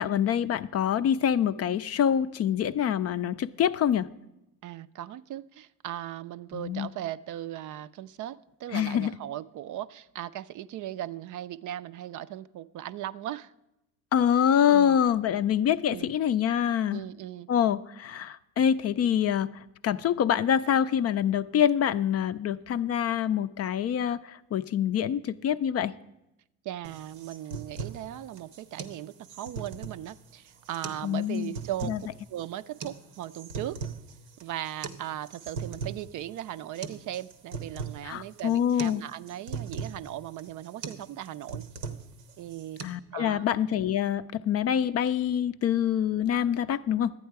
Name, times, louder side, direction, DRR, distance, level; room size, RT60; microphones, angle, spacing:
voice 1, 0.0-4.1 6.5-6.9 8.7-9.2 14.1-17.0 17.5-25.9 31.0-31.5 31.8-32.0 38.0-39.0 42.8-47.1, left 9 dB, 40° left, 13 dB, 0.4 m, -26 dB
voice 2, 4.6-13.5 14.7-15.0 15.9-16.1 16.9-17.5 26.6-31.9 32.3-33.8 34.4-41.6 42.4-42.8 43.1-43.4, right 12 dB, 50° right, 14 dB, 0.4 m, -38 dB
sound 1, 26.8-42.8, right 5 dB, 85° right, 0.9 m, -40 dB
11.5 x 8.7 x 4.6 m, 0.90 s
hypercardioid pair, 65°, 40 cm